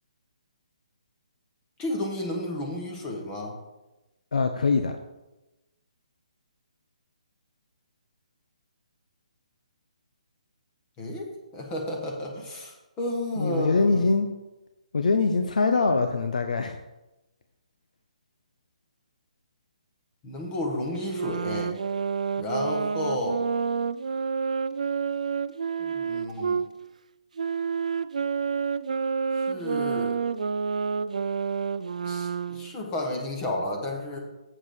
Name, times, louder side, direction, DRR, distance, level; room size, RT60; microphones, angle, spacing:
voice 1, 1.8-3.6 11.0-14.1 20.2-21.7 22.4-23.4 25.8-26.6 29.3-30.2 32.0-34.2, left 1 dB, 15° left, 0 dB, 1.3 m, -32 dB
voice 2, 4.3-5.0 13.4-14.3 14.9-16.8, left 4 dB, 80° left, 6 dB, 0.7 m, -23 dB
sound 1, 21.0-26.7 27.4-32.7, right 6 dB, 75° right, 0.4 m, -29 dB
7.7 x 4.8 x 6.5 m, 1.0 s
hypercardioid pair, 165°, 4 cm